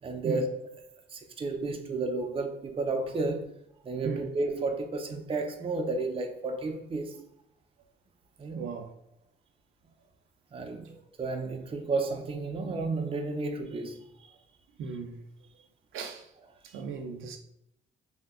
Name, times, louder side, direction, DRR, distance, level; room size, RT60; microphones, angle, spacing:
voice 1, 0.0-0.7 1.1-3.6 3.8-7.2 8.4-8.7 10.5-14.3, right 3 dB, 30° right, 0.5 m, -32 dB
voice 2, 8.6-8.9 14.8-15.2 15.9-16.3 16.6-17.4, right 5 dB, 85° right, 0.5 m, -36 dB
2.7 x 2.2 x 3.6 m
cardioid pair, 90°, 20 cm